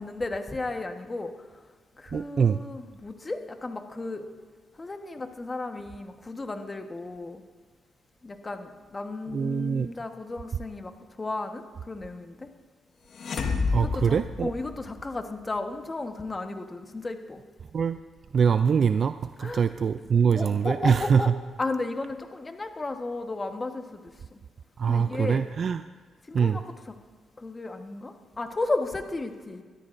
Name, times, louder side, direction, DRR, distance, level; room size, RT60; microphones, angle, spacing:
voice 1, 0.0-1.3 2.0-4.2 4.8-7.4 8.2-10.9 11.2-12.5 13.8-17.4 19.4-19.6 20.3-21.3 21.6-24.4 24.9-25.5 26.3-26.9 27.4-29.6, left 2 dB, 30° left, 6 dB, 1.2 m, -34 dB
voice 2, 2.1-2.6 9.3-9.9 13.7-14.5 17.7-18.0 18.3-21.2 24.8-25.8 26.3-26.6, right 6 dB, 55° right, 11 dB, 0.3 m, -23 dB
sound 1, 13.1-15.1, left 4 dB, 65° left, 1.5 m, -29 dB
21.0 x 13.0 x 2.6 m, 1.5 s
cardioid pair, 70°, 0 cm